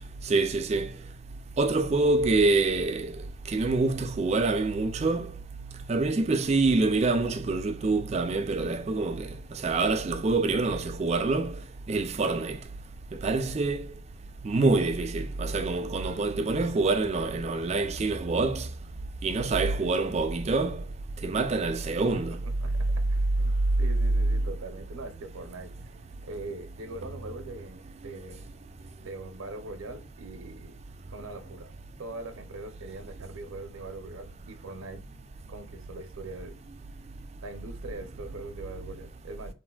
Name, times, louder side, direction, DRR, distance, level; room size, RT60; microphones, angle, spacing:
voice 1, 0.3-0.9 1.6-3.1 3.5-5.3 5.9-9.3 9.6-11.5 11.9-12.6 13.2-13.8 14.4-18.7 19.2-20.8 21.2-22.4, right 3 dB, 30° right, 0.3 m, -26 dB
voice 2, 22.0-23.5 23.8-26.0 26.2-28.5 29.0-30.8 31.1-31.7 32.0-35.0 35.5-36.6 37.4-39.5, right 2 dB, 80° right, 0.5 m, -42 dB
3.3 x 2.5 x 2.2 m
head